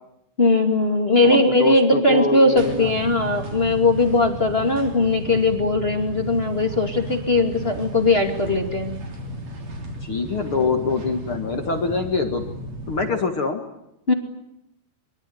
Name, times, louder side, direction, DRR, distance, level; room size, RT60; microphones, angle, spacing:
voice 1, 0.4-9.0 14.1-14.2, left 2 dB, 20° left, 4 dB, 1.5 m, -19 dB
voice 2, 1.2-2.9 10.0-12.4 12.9-13.6, left 4 dB, 45° left, 5 dB, 1.9 m, -24 dB
sound 1, 2.6-13.1, right 1 dB, 40° right, 4.2 m, -34 dB
24.0 x 24.0 x 9.5 m, 0.82 s
omnidirectional pair, 4.9 m